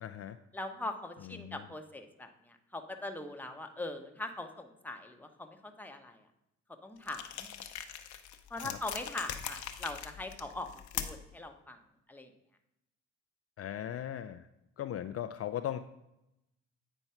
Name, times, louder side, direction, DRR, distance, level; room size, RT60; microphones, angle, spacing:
voice 1, 0.0-0.4 1.2-1.6 8.6-8.8 13.6-14.5 14.8-15.8, left 11 dB, 50° left, 10 dB, 0.4 m, -38 dB
voice 2, 0.5-6.3 6.8-7.5 8.5-11.8 12.1-12.3, left 2 dB, 5° left, 4 dB, 1.0 m, -41 dB
sound 1, 7.0-11.3, left 10 dB, 70° left, 0.8 m, -41 dB
9.1 x 4.5 x 5.6 m, 0.86 s
cardioid pair, 90°, 30 cm